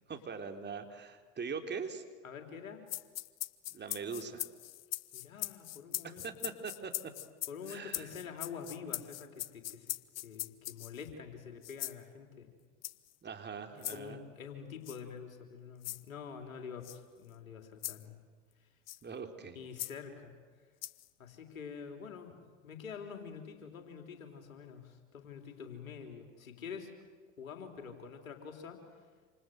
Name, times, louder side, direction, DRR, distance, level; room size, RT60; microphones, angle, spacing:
voice 1, 0.1-2.0 3.7-4.4 6.0-7.1 7.7-8.1 13.2-14.2 19.0-19.6, right 5 dB, 25° right, 5 dB, 3.5 m, -42 dB
voice 2, 2.2-2.9 5.1-6.5 7.5-9.9 10.2-12.5 13.9-18.2 19.6-20.3 21.2-26.9 27.4-28.8, left 6 dB, 85° left, 4 dB, 3.9 m, -47 dB
sound 1, 2.9-11.1 11.6-12.0 12.8-13.1 13.8-14.0 14.9-15.0 15.8-16.0 16.8-17.0 17.8-18.0 18.9-19.0 19.8-19.9 20.8-21.1, left 15 dB, 40° left, 1.0 m, -40 dB
27.5 x 27.5 x 7.9 m, 1.5 s
hypercardioid pair, 80°, 40 cm